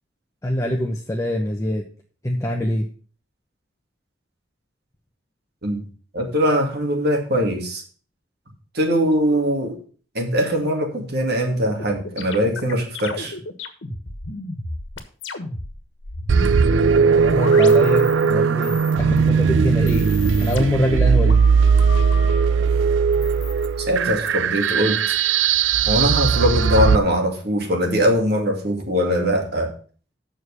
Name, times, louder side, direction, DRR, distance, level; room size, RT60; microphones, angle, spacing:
voice 1, 0.4-1.9 2.2-2.9 17.3-20.1 20.4-21.4, equal, 15° left, 1 dB, 0.9 m, -23 dB
voice 2, 6.1-7.8 8.7-9.8 10.1-13.4 23.8-25.0 25.9-29.7, equal, 60° right, 2 dB, 2.4 m, -21 dB
sound 1, 11.8-18.3 18.6-19.3 19.7-22.4 23.1-24.3, left 2 dB, 85° left, 1.4 m, -34 dB
sound 2, 16.3-27.0, right 6 dB, 90° right, 0.5 m, -18 dB
7.3 x 6.4 x 6.9 m, 0.42 s
head